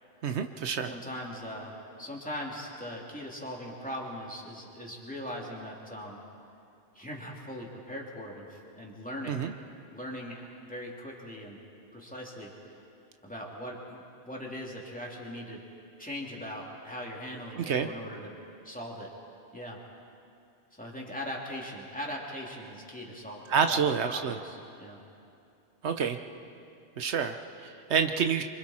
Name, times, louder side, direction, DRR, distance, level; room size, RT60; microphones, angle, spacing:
voice 1, 0.2-0.9 9.3-9.5 17.6-17.9 23.5-24.4 25.8-26.2 27.0-28.4, right 6 dB, 75° right, 7 dB, 1.1 m, -28 dB
voice 2, 0.9-6.2 6.9-9.4 9.9-10.4 10.7-11.6 11.9-12.5 13.2-15.6 16.0-18.4 18.6-19.1 19.5-19.8 20.7-23.4 23.7-25.0, equal, 5° left, -3 dB, 2.8 m, -40 dB
28.0 x 24.5 x 4.3 m, 2.5 s
omnidirectional pair, 1.1 m